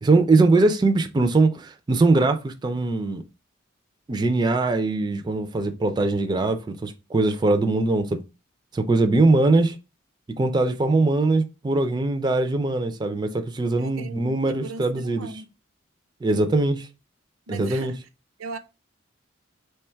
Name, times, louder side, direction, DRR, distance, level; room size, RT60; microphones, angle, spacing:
voice 1, 0.0-3.2 4.1-8.2 8.7-9.8 10.4-15.3 16.2-16.9 17.5-17.9, right 2 dB, 20° right, 0.3 m, -21 dB
voice 2, 13.8-15.5 17.5-18.0 18.4-18.6, right 3 dB, 85° right, 0.5 m, -38 dB
3.2 x 2.3 x 4.3 m
head